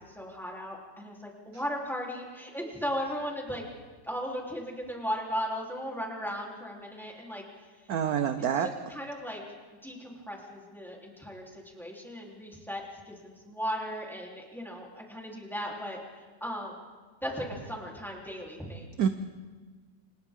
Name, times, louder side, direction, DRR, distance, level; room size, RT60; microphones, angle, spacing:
voice 1, 0.1-3.6 4.0-7.7 8.6-9.4 9.8-16.9 17.2-19.0, equal, ahead, -2 dB, 3.4 m, -37 dB
voice 2, 7.9-8.7 19.0-19.1, right 8 dB, 60° right, 9 dB, 1.1 m, -26 dB
29.0 x 27.0 x 3.7 m, 1.4 s
omnidirectional pair, 2.1 m